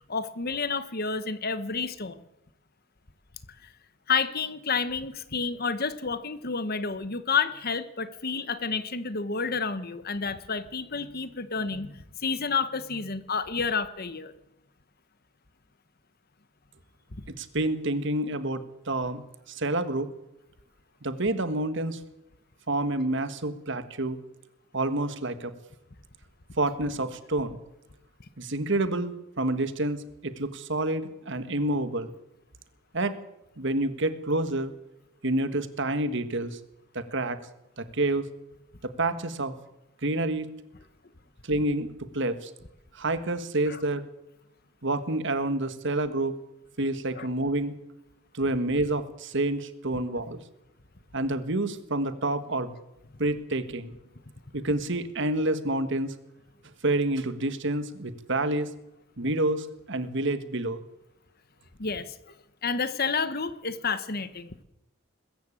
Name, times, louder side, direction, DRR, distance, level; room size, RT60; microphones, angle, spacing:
voice 1, 0.1-2.2 4.1-14.3 43.7-43.8 47.1-47.3 61.8-62.1 62.6-64.6, left 5 dB, 50° left, 13 dB, 1.3 m, -30 dB
voice 2, 17.3-19.2 19.5-20.1 21.0-22.0 22.7-24.2 24.7-25.5 26.6-27.6 28.4-32.1 32.9-33.2 33.6-34.7 35.2-36.6 36.9-37.4 37.8-38.3 39.0-39.5 40.0-40.5 41.4-42.5 42.9-44.0 44.8-46.3 46.8-47.8 48.3-50.4 51.1-52.7 53.2-53.9 54.5-56.1 56.8-58.7 59.2-60.8, right 2 dB, 60° right, 11 dB, 1.7 m, -28 dB
21.5 x 14.5 x 8.7 m, 0.87 s
head